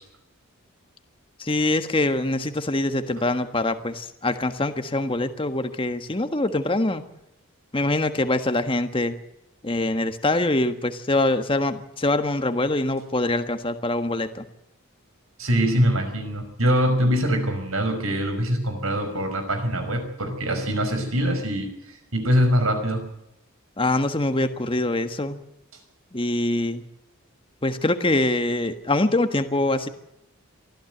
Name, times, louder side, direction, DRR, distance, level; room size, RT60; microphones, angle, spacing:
voice 1, 1.4-7.0 7.7-9.2 9.6-14.5 23.8-25.4 26.1-26.8 27.6-29.9, left 2 dB, 25° left, 8 dB, 1.5 m, -24 dB
voice 2, 15.4-23.1, equal, 80° right, 7 dB, 5.5 m, -23 dB
24.0 x 14.5 x 8.0 m, 0.83 s
head